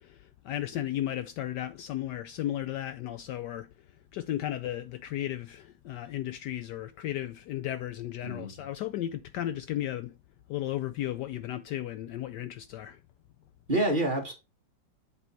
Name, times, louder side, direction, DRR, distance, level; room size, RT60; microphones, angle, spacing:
voice 1, 0.0-10.2 10.5-13.0, left 13 dB, 75° left, 1.1 m, -35 dB
voice 2, 8.2-8.5 13.7-14.3, right 1 dB, 25° right, 2.2 m, -27 dB
7.7 x 5.1 x 4.5 m
omnidirectional pair, 2.0 m